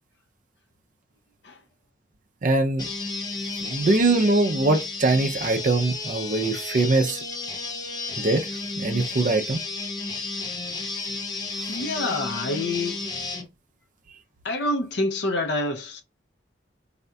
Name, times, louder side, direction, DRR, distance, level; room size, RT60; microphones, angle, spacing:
voice 1, 2.4-2.9 3.6-7.2 8.2-8.5 8.8-9.6, right 2 dB, 45° right, 0.5 m, -22 dB
sound 1, 2.8-13.5, left 3 dB, 20° left, 0.5 m, -32 dB
voice 2, 11.7-13.0 14.4-16.0, left 2 dB, 65° left, 0.7 m, -27 dB
4.1 x 2.3 x 2.6 m
head